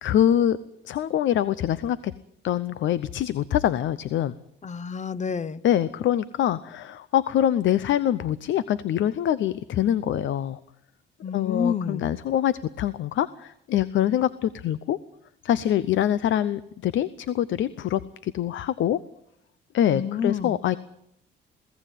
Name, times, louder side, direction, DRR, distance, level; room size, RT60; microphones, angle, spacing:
voice 1, 0.0-0.6 0.8-2.1 2.4-4.3 5.6-10.6 11.3-15.0 15.4-19.0 19.7-20.8, left 11 dB, 75° left, 16 dB, 0.8 m, -24 dB
voice 2, 4.6-5.6 11.2-12.1 19.9-20.6, left 6 dB, 35° left, 17 dB, 1.0 m, -29 dB
22.0 x 16.0 x 9.2 m, 0.78 s
cardioid pair, 90°, 20 cm